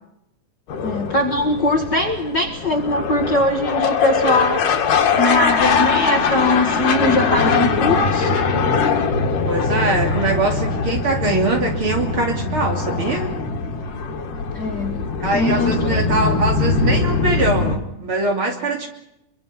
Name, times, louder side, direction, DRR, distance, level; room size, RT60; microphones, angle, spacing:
sound 1, 0.7-17.8, left 5 dB, 75° left, 3.8 m, -21 dB
voice 1, 0.8-4.7 5.2-8.4 14.5-15.0 15.3-16.0, left 1 dB, 40° left, 4 dB, 1.9 m, -21 dB
voice 2, 9.4-13.3 15.2-18.9, right 2 dB, 40° right, 3 dB, 3.5 m, -22 dB
25.0 x 24.0 x 5.7 m, 0.84 s
omnidirectional pair, 3.8 m